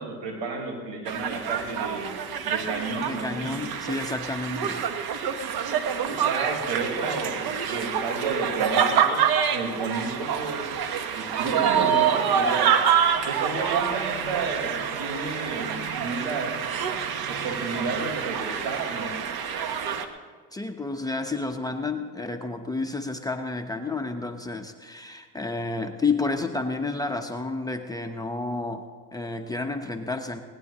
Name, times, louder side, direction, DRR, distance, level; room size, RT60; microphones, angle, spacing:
voice 1, 0.0-2.1 2.4-3.6 5.9-10.8 11.1-12.8 13.2-16.5 17.3-19.3, right 4 dB, 75° right, 1 dB, 4.8 m, -32 dB
sound 1, 1.1-20.1, right 8 dB, 55° right, 1.4 m, -26 dB
voice 2, 3.0-4.8 20.5-30.4, left 3 dB, 10° left, 4 dB, 1.0 m, -30 dB
20.5 x 18.0 x 3.1 m, 1.6 s
supercardioid pair, 90°, 43 cm